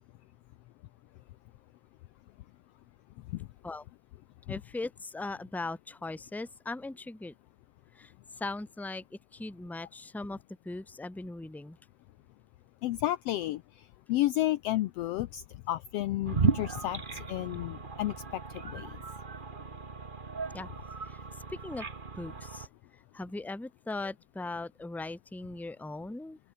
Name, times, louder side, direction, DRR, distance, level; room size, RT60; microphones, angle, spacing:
voice 1, 4.5-7.3 7.9-10.4 10.6-11.8 20.5-20.7 21.0-21.2 21.5-21.9 22.2-26.4, left 2 dB, ahead, 1.6 m, -39 dB
voice 2, 12.8-13.6 14.1-17.0 17.3-18.1 18.5-18.9, left 15 dB, 85° left, 1.3 m, -31 dB
sound 1, 16.2-22.7, right 4 dB, 75° right, 0.4 m, -35 dB
open air
omnidirectional pair, 3.6 m